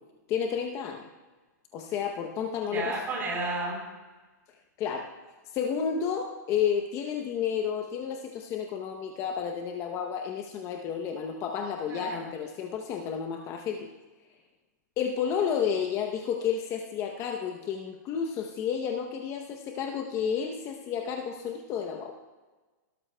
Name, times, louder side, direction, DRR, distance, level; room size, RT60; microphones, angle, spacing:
voice 1, 0.3-1.1 1.7-2.9 4.8-5.1 5.5-13.9 15.0-22.2, left 7 dB, 30° left, 3 dB, 0.8 m, -31 dB
voice 2, 2.6-3.8 11.9-12.3, right 2 dB, 20° right, -1 dB, 3.9 m, -32 dB
16.5 x 13.0 x 2.2 m, 1.3 s
hypercardioid pair, 150°, 10 cm